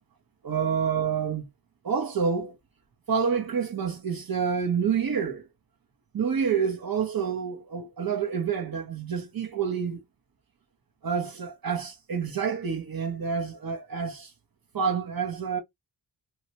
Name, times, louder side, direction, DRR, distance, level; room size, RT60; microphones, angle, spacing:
voice 1, 0.4-1.5 1.8-2.6 3.1-5.4 6.1-10.0 11.0-14.3 14.7-15.6, right 6 dB, 50° right, 0.9 m, -28 dB
3.0 x 2.9 x 2.8 m
cardioid pair, 80°, 44 cm